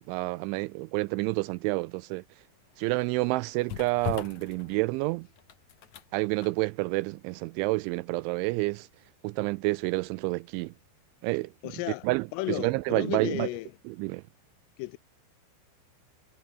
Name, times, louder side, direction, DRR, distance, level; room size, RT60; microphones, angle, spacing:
voice 1, 0.0-2.2 2.8-5.3 6.1-8.9 9.2-10.7 11.2-11.5 12.0-13.5 13.9-14.2, right 23 dB, 85° right, 2.7 m, -29 dB
sound 1, 2.4-10.4 10.7-10.9, left 9 dB, 55° left, 2.1 m, -43 dB
voice 2, 11.6-12.1 12.3-13.7 14.8-15.0, left 20 dB, 85° left, 3.4 m, -34 dB
omnidirectional pair, 5.8 m